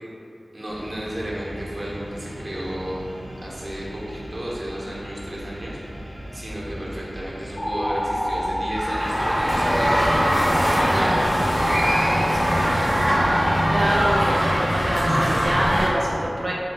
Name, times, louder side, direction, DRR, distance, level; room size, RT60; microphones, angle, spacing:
voice 1, 0.5-3.1 3.4-13.5, equal, 35° right, -6 dB, 1.0 m, -34 dB
sound 1, 0.7-13.3, equal, 65° left, 1.2 m, -37 dB
sound 2, 7.6-14.4, equal, 25° left, 0.3 m, -27 dB
sound 3, 8.7-15.9, equal, 10° right, 0.9 m, -22 dB
voice 2, 10.8-11.3 13.7-16.5, right 1 dB, 65° right, -5 dB, 0.4 m, -25 dB
4.8 x 2.2 x 3.4 m, 2.5 s
wide cardioid pair, 50°, 0 cm